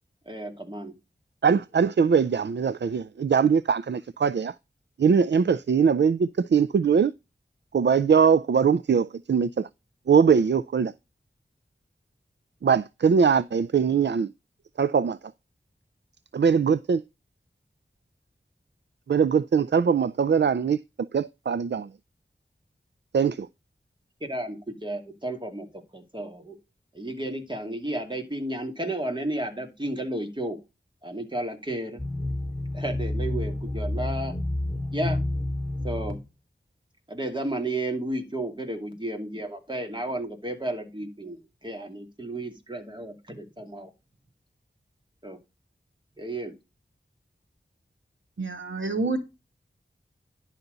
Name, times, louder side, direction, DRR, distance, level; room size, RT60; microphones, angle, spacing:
voice 1, 0.3-1.0 24.2-25.7 25.9-26.6 26.9-30.6 31.0-32.0 32.7-34.4 34.9-35.2 35.8-36.2 37.1-43.9 45.2-45.4 46.2-46.5, right 1 dB, 25° right, 2.5 m, -33 dB
voice 2, 1.4-4.5 5.0-7.1 7.7-9.7 10.1-10.9 12.6-14.3 14.8-15.2 16.3-17.0 19.1-20.8 21.1-21.9 23.1-23.5, right 6 dB, 65° right, 0.4 m, -21 dB
sound 1, 32.0-36.2, left 1 dB, 5° left, 3.4 m, -29 dB
voice 3, 48.4-49.2, right 3 dB, 85° right, 2.1 m, -28 dB
11.0 x 5.8 x 3.9 m
wide cardioid pair, 60°, 20 cm